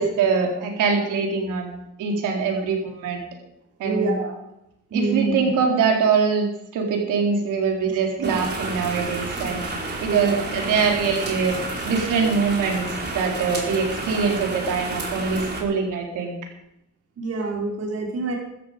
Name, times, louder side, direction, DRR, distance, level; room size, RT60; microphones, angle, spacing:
voice 1, 0.0-1.7 2.0-3.2 3.8-4.1 4.9-9.6 10.0-11.5 11.9-12.9 13.1-16.4, right 5 dB, 85° right, 1 dB, 4.2 m, -23 dB
voice 2, 3.8-4.4 4.9-5.3 8.2-8.3 10.0-10.5 17.2-18.3, right 4 dB, 55° right, -1 dB, 4.5 m, -26 dB
sound 1, 8.2-15.6, right 2 dB, 35° right, 4.6 m, -30 dB
14.5 x 14.0 x 5.3 m, 0.84 s
cardioid pair, 90°, 30 cm